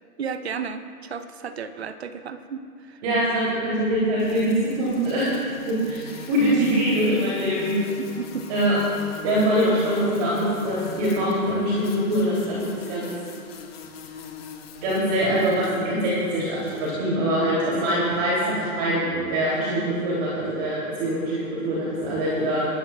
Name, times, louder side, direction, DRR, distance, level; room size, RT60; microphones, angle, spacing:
voice 1, 0.2-3.0 8.2-8.5, right 6 dB, 45° right, 10 dB, 0.7 m, -33 dB
voice 2, 3.0-5.3 5.6-7.7 8.5-8.8 9.2-13.1 14.8-22.7, right 1 dB, 25° right, -7 dB, 2.9 m, -23 dB
sound 1, 4.2-16.9, left 5 dB, 40° left, 1.6 m, -42 dB
23.0 x 13.5 x 2.3 m, 2.3 s
hypercardioid pair, 155°, 47 cm